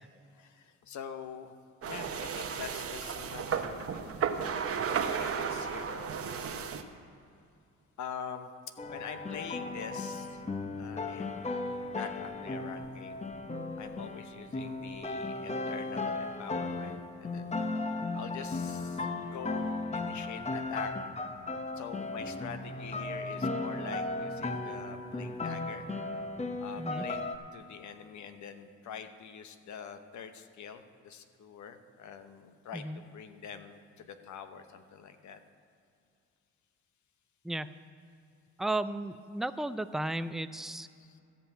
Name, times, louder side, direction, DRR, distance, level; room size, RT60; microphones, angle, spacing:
voice 1, 0.3-1.5 1.8-4.8 5.1-6.9 8.0-8.5 8.9-10.4 10.8-13.2 13.8-17.6 18.1-20.9 21.8-25.8 26.6-27.2 27.5-35.4 41.0-41.2, left 7 dB, 70° left, 9 dB, 1.0 m, -45 dB
sound 1, 1.8-6.8, right 7 dB, 50° right, 0.9 m, -34 dB
sound 2, 8.8-27.4, left 3 dB, 20° left, 0.8 m, -36 dB
voice 2, 37.4-37.8 38.6-40.9, right 1 dB, ahead, 11 dB, 0.4 m, -34 dB
14.0 x 5.5 x 8.4 m, 2.5 s
cardioid pair, 90°, 30 cm